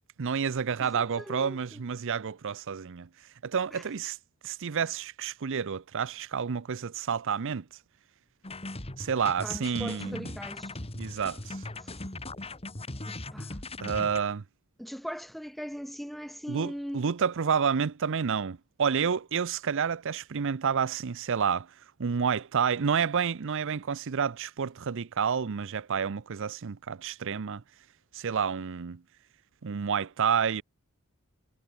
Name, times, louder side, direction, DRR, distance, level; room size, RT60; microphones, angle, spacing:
voice 1, 0.2-3.1 3.4-4.2 4.4-7.6 9.0-10.2 11.0-11.6 13.8-14.4 16.5-21.7 22.0-27.6 28.1-29.0 29.6-30.6, right 6 dB, 60° right, 0.6 m, -29 dB
voice 2, 0.8-1.8 3.7-3.8 9.4-10.7 11.8-11.9 13.0-13.6 14.8-17.0, equal, ahead, 5.0 m, -40 dB
sound 1, 8.4-14.2, left 2 dB, 30° left, 1.9 m, -39 dB
head